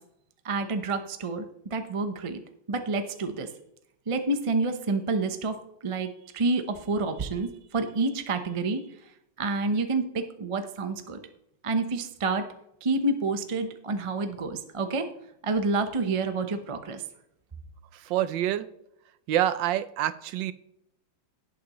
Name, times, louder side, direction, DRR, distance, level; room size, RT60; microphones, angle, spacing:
voice 1, 0.4-2.4 2.7-3.5 4.1-5.6 5.8-8.8 9.4-11.2 11.6-12.5 12.8-15.1 15.4-17.0, right 3 dB, 55° right, 8 dB, 0.3 m, -28 dB
voice 2, 17.9-18.7 19.3-20.5, right 12 dB, 75° right, 14 dB, 1.3 m, -27 dB
17.5 x 6.0 x 3.1 m, 0.77 s
omnidirectional pair, 2.1 m